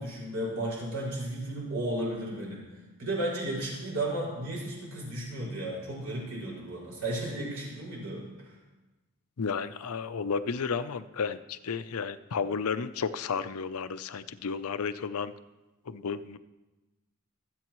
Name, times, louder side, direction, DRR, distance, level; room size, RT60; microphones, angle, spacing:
voice 1, 0.0-2.6 3.0-8.5, right 1 dB, 85° right, -4 dB, 5.4 m, -34 dB
voice 2, 9.4-15.3 15.9-16.4, left 5 dB, 80° left, 12 dB, 0.6 m, -32 dB
25.0 x 8.4 x 3.1 m, 1.1 s
head